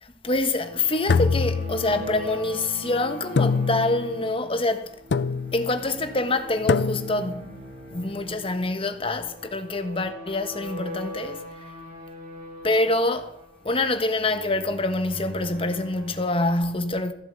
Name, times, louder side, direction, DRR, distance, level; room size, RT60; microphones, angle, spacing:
voice 1, 0.0-4.9 5.5-7.4 7.9-11.7 12.6-13.4 13.6-17.1, left 2 dB, 30° left, 1.4 m, -26 dB
sound 1, 0.5-16.2, left 1 dB, 55° right, 6.0 m, -41 dB
sound 2, 1.1-2.3 3.4-4.2 5.1-5.7 6.7-7.3, left 5 dB, 90° left, 0.5 m, -24 dB
15.5 x 7.5 x 7.8 m
head